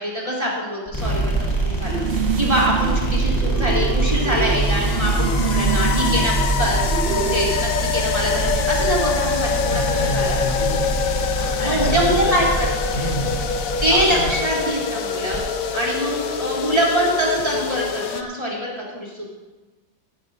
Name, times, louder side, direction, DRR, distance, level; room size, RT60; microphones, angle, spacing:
voice 1, 0.0-1.3 1.6-10.4 11.4-13.0 13.8-15.4 15.7-19.3, equal, 20° right, -4 dB, 3.0 m, -24 dB
sound 1, 0.9-17.9, right 2 dB, 15° left, 3.3 m, -25 dB
sound 2, 1.8-7.5, right 6 dB, 70° right, 0.5 m, -27 dB
sound 3, 3.6-18.2, left 7 dB, 60° left, 1.0 m, -26 dB
voice 2, 9.7-11.0 11.6-12.3 12.9-13.3 13.9-14.3, left 1 dB, 80° left, -4 dB, 3.8 m, -28 dB
16.0 x 13.5 x 2.6 m, 1.2 s
omnidirectional pair, 1.9 m